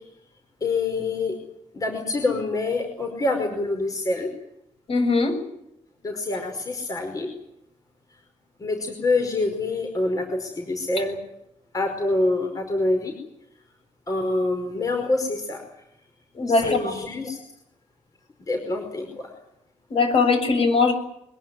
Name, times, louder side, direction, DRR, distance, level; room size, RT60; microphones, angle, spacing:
voice 1, 0.6-1.4 1.7-4.3 6.0-7.3 8.6-11.2 11.7-13.1 14.1-15.6 16.5-17.4 18.5-19.3, left 2 dB, 25° left, 4 dB, 5.1 m, -26 dB
voice 2, 4.9-5.3 16.3-17.0 19.9-20.9, left 4 dB, 45° left, 7 dB, 7.2 m, -20 dB
23.5 x 21.5 x 9.7 m, 0.79 s
cardioid pair, 135°, 13 cm